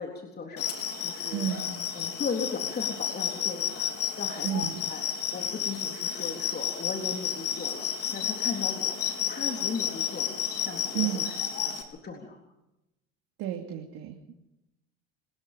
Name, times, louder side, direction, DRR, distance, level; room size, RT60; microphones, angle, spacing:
voice 1, 0.0-1.5 1.9-5.0 5.3-11.3 11.6-12.4, left 4 dB, 30° left, 2 dB, 3.7 m, -37 dB
sound 1, 0.6-11.8, left 8 dB, 45° left, 4.1 m, -31 dB
voice 2, 1.3-1.7 4.4-4.7 10.9-11.2 13.4-14.4, right 11 dB, 60° right, 2 dB, 2.8 m, -31 dB
24.5 x 20.5 x 5.2 m, 0.90 s
hypercardioid pair, 80°, 31 cm